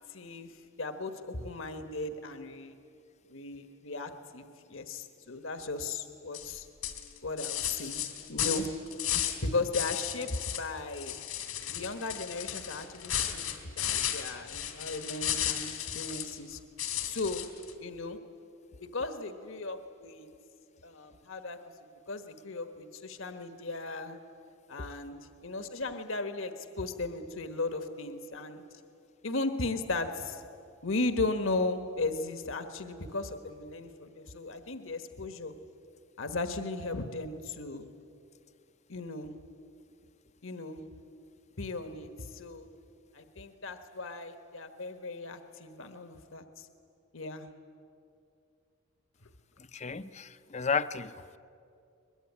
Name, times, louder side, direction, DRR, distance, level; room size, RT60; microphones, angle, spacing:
voice 1, 0.0-2.8 3.3-4.4 4.7-6.7 7.2-8.0 8.3-8.7 9.4-11.2 11.7-13.4 13.7-16.6 17.0-17.5 17.8-18.2 18.8-20.3 20.8-21.6 22.1-24.2 24.7-25.2 25.4-28.6 29.2-30.4 30.8-35.5 36.2-37.9 38.9-39.3 40.4-40.8 41.6-42.7 43.1-46.7 47.1-47.5, left 3 dB, 70° left, 8 dB, 1.3 m, -36 dB
sound 1, 6.3-6.5 6.8-9.4 9.7-10.7 10.9-16.4 16.8-17.7, left 11 dB, 85° left, 2.7 m, -34 dB
voice 2, 49.7-51.2, left 5 dB, 30° left, 12 dB, 0.6 m, -33 dB
22.5 x 22.0 x 9.8 m, 2.5 s
head